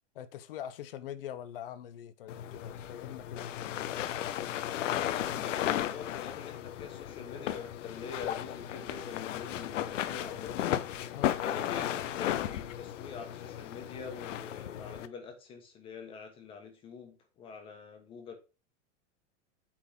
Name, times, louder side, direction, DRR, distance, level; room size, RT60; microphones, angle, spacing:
voice 1, 0.1-3.8 11.1-11.4, left 10 dB, 50° left, 0.8 m, -43 dB
sound 1, 2.3-15.1, left 11 dB, 85° left, 0.9 m, -35 dB
voice 2, 5.0-18.3, left 5 dB, 15° left, 1.2 m, -45 dB
8.7 x 3.9 x 5.7 m
supercardioid pair, 180°, 37 cm